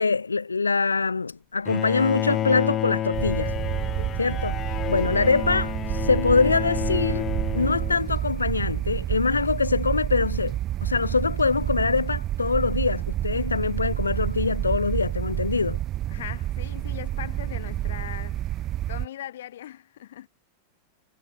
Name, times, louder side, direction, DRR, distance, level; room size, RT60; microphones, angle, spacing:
voice 1, 0.0-3.5 4.2-15.8, left 4 dB, 75° left, 0.4 m, -24 dB
Bowed string instrument, 1.7-8.4, left 11 dB, 30° left, 1.2 m, -30 dB
sound 1, 3.1-19.1, right 13 dB, 30° right, 0.4 m, -29 dB
voice 2, 16.1-20.3, left 12 dB, 60° left, 3.6 m, -40 dB
figure-of-eight pair, 90°, 0 cm